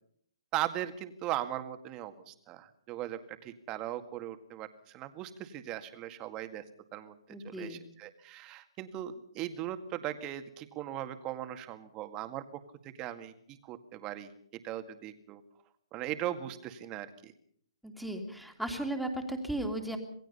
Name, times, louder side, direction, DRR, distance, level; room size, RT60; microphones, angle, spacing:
voice 1, 0.5-6.6 6.9-7.2 7.4-12.4 12.8-14.3 14.6-15.4 15.9-17.3, right 12 dB, 20° right, 8 dB, 2.0 m, -38 dB
voice 2, 7.3-7.8 17.8-20.0, right 1 dB, ahead, 4 dB, 2.8 m, -36 dB
27.5 x 19.0 x 5.6 m, 0.64 s
hypercardioid pair, 155°, 3 cm